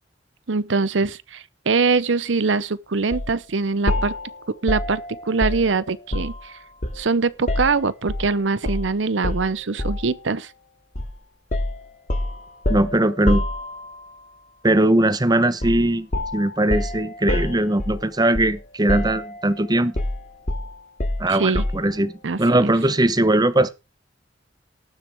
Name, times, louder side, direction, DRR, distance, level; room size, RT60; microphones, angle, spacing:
voice 1, 0.5-4.1 4.6-5.0 5.3-6.5 7.0-10.5 21.3-21.6 22.2-22.7, right 4 dB, 80° right, 0.8 m, -23 dB
sound 1, 3.1-3.3 3.9-6.5 6.8-8.3 8.7-8.9 9.2-10.1 11.0-11.2 11.5-14.1 15.6-15.9 16.1-18.6 18.9-19.5 20.0-21.9, left 1 dB, 45° left, 2.3 m, -27 dB
voice 2, 12.7-13.4 14.6-16.1 16.3-19.9 21.2-22.1 22.4-23.7, right 1 dB, 20° right, 0.9 m, -20 dB
19.0 x 7.5 x 3.5 m
head